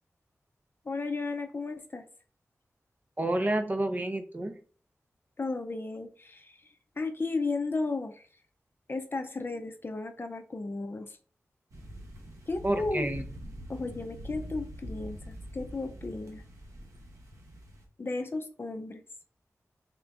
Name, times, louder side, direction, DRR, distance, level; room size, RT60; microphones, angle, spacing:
voice 1, 0.8-2.1 5.4-6.7 7.0-8.3 8.9-11.2 12.5-13.1 13.7-16.4 18.0-19.0, left 3 dB, 45° left, 0.5 m, -34 dB
voice 2, 3.2-4.6 12.6-13.2, right 1 dB, 30° right, 0.6 m, -29 dB
sound 1, 11.7-17.9, equal, 75° right, 0.9 m, -44 dB
3.6 x 2.5 x 3.3 m
wide cardioid pair, 75°, 5 cm